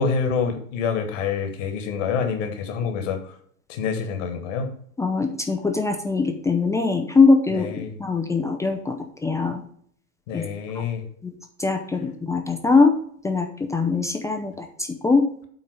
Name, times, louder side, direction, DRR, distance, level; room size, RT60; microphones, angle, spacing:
voice 1, 0.0-3.3 3.7-4.7 7.5-7.9 10.3-11.0, left 6 dB, 50° left, 6 dB, 1.7 m, -27 dB
voice 2, 5.0-9.0 9.2-9.6 10.3-10.4 11.2-11.3 11.6-13.0 13.2-15.2, left 4 dB, 5° left, 4 dB, 0.5 m, -21 dB
8.7 x 4.0 x 6.6 m, 0.62 s
figure-of-eight pair, 90°, 46 cm